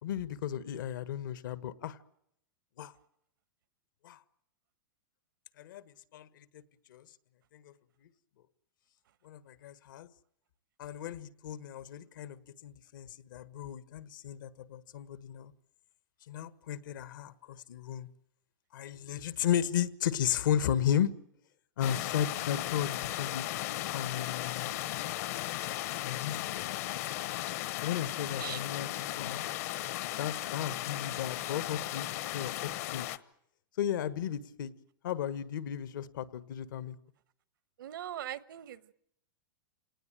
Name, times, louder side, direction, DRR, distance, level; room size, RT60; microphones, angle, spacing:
voice 1, 0.0-2.0 2.8-2.9 4.0-4.2 5.6-5.8 6.1-6.6 6.9-7.1 7.5-7.7 9.2-10.1 10.8-15.5 16.3-18.1 18.7-21.1 21.8-23.7 23.9-24.7 26.0-26.7 27.8-29.4 30.1-32.1 32.3-32.5 32.9-33.1 33.8-34.7 35.0-37.0, left 10 dB, 70° left, 15 dB, 1.5 m, -34 dB
sound 1, 21.8-33.2, left 15 dB, 50° left, 1.0 m, -36 dB
voice 2, 37.8-38.9, right 12 dB, 80° right, 18 dB, 1.1 m, -40 dB
27.0 x 19.0 x 9.1 m, 0.76 s
supercardioid pair, 155°, 11 cm